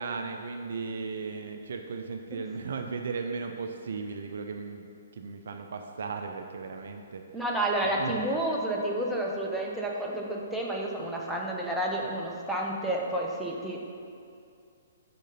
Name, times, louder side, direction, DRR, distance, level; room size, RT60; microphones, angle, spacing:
voice 1, 0.0-7.2 8.0-8.2 12.0-12.1, right 4 dB, 55° right, 5 dB, 0.4 m, -36 dB
voice 2, 7.3-13.8, right 1 dB, ahead, -3 dB, 0.7 m, -30 dB
6.3 x 3.7 x 5.5 m, 2.4 s
figure-of-eight pair, 120°, 0 cm